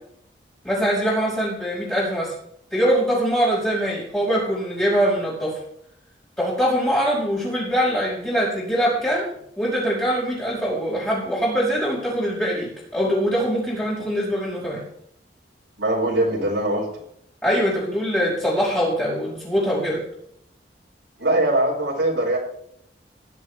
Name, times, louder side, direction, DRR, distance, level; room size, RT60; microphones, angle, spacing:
voice 1, 0.6-2.3 2.7-5.6 6.4-9.3 9.6-14.8 17.4-20.0, equal, 10° left, -10 dB, 5.4 m, -23 dB
voice 2, 15.8-16.9 21.2-22.4, right 1 dB, 80° right, -6 dB, 4.9 m, -21 dB
18.0 x 11.5 x 3.4 m, 0.71 s
head